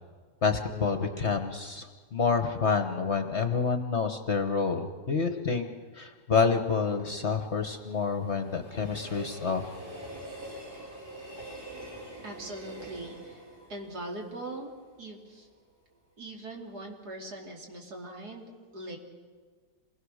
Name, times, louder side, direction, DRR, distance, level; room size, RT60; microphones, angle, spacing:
voice 1, 0.4-5.7 5.9-9.7, left 5 dB, 45° left, 7 dB, 1.3 m, -28 dB
Train, 6.5-15.6 16.0-16.1, right 1 dB, 30° right, 4.1 m, -45 dB
voice 2, 12.2-13.4 13.7-14.7 15.0-15.5 16.2-19.0, right 1 dB, 60° right, 0 dB, 3.4 m, -41 dB
27.5 x 20.5 x 6.5 m, 1.5 s
omnidirectional pair, 1.9 m